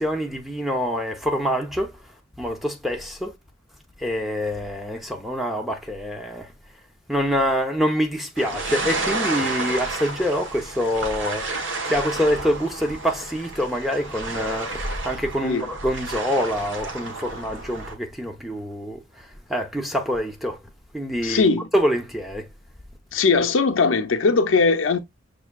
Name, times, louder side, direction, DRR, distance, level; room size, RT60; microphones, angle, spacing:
voice 1, 0.0-1.9 2.4-3.3 4.0-6.5 7.1-20.6 20.9-21.5 21.7-22.5, equal, ahead, 0.6 m, -26 dB
sound 1, 8.4-17.9, right 2 dB, 70° right, 1.0 m, -31 dB
voice 2, 21.2-21.7 23.1-25.0, left 4 dB, 85° left, 0.5 m, -20 dB
6.2 x 2.7 x 2.3 m
head